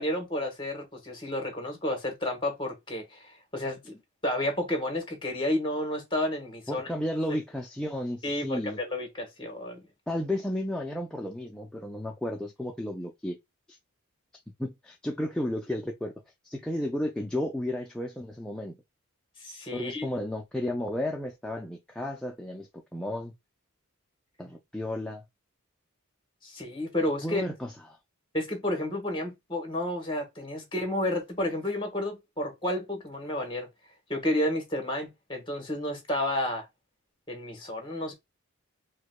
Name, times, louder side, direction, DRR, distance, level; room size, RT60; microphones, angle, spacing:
voice 1, 0.0-6.9 8.2-9.8 19.4-20.0 26.4-27.4 28.3-33.7 34.1-36.6 37.3-38.1, left 1 dB, 20° left, 1.1 m, -31 dB
voice 2, 6.7-8.8 10.1-13.4 13.7-13.8 14.6-16.1 16.4-18.8 19.7-23.3 24.4-25.2 27.2-27.7, left 1 dB, 5° left, 0.3 m, -33 dB
4.7 x 2.1 x 2.2 m
head